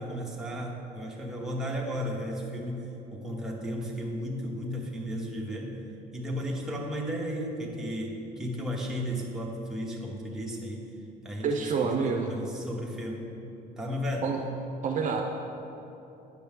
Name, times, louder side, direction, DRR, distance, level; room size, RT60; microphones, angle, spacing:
voice 1, 0.0-5.8 6.1-10.9 11.2-13.3 13.8-14.4, equal, 5° right, -3 dB, 1.1 m, -34 dB
voice 2, 11.4-12.3 14.2-14.4 14.8-15.2, right 5 dB, 45° right, 2 dB, 0.5 m, -27 dB
9.6 x 6.0 x 3.6 m, 3.0 s
cardioid pair, 110°, 17 cm